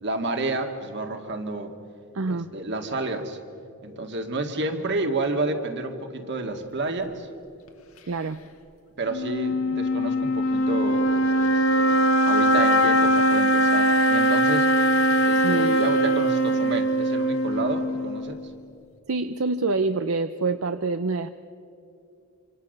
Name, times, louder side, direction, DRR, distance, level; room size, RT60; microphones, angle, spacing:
voice 1, 0.0-1.7 2.3-3.4 3.8-7.3 9.0-14.7 15.2-18.4, right 2 dB, 55° right, 5 dB, 2.1 m, -30 dB
voice 2, 2.1-2.5 8.1-8.4 15.4-15.8 19.1-21.3, right 3 dB, 70° right, 10 dB, 0.7 m, -26 dB
sound 1, 9.1-18.5, equal, 75° left, 2.0 m, -21 dB
26.5 x 26.0 x 6.7 m, 2.6 s
head